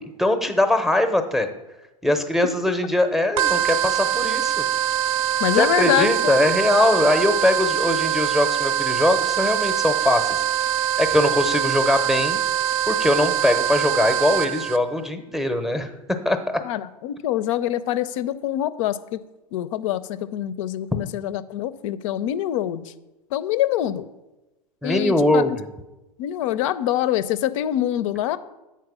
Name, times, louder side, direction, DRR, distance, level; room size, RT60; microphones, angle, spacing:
voice 1, 0.0-1.5 2.0-4.6 5.5-10.4 11.0-12.4 12.9-16.6 24.8-25.7, left 1 dB, ahead, 8 dB, 0.7 m, -21 dB
sound 1, 3.4-14.8, right 10 dB, 55° right, 0.5 m, -23 dB
voice 2, 5.4-6.5 16.6-19.2 19.5-22.8 23.3-24.0 24.8-25.6 26.2-28.4, left 12 dB, 50° left, 15 dB, 0.5 m, -25 dB
7.9 x 4.6 x 6.1 m, 1.0 s
figure-of-eight pair, 100°, 20 cm